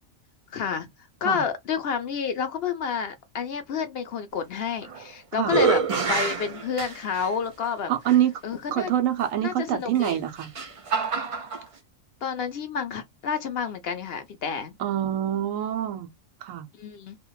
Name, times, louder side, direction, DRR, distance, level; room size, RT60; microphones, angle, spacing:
voice 1, 0.5-0.9 1.2-5.8 6.1-7.9 8.4-8.9 9.4-10.2 12.2-14.8 16.8-17.2, left 6 dB, 60° left, 0.7 m, -29 dB
sound 1, 4.6-5.1 5.4-7.3 8.1-8.2 9.9-11.6, right 5 dB, 55° right, 0.3 m, -27 dB
voice 2, 7.9-8.3 8.7-10.5 14.8-16.1 16.4-16.7, right 11 dB, 90° right, 1.1 m, -25 dB
2.9 x 2.5 x 2.2 m
omnidirectional pair, 1.3 m